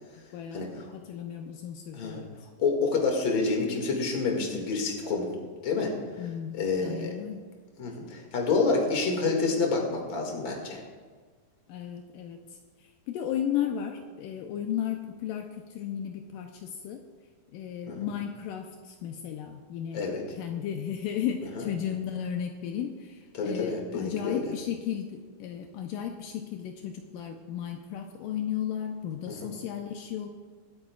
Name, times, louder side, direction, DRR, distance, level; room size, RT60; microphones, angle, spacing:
voice 1, 0.3-2.3 6.2-7.4 11.7-17.0 17.5-20.0 20.4-30.3, left 9 dB, 80° left, 4 dB, 2.2 m, -34 dB
voice 2, 2.6-5.3 5.6-5.9 6.5-7.1 7.8-10.8 17.9-18.0 19.9-20.2 23.3-24.4 29.3-29.4, left 4 dB, 40° left, 1 dB, 2.2 m, -28 dB
24.5 x 8.6 x 2.4 m, 1.5 s
omnidirectional pair, 4.1 m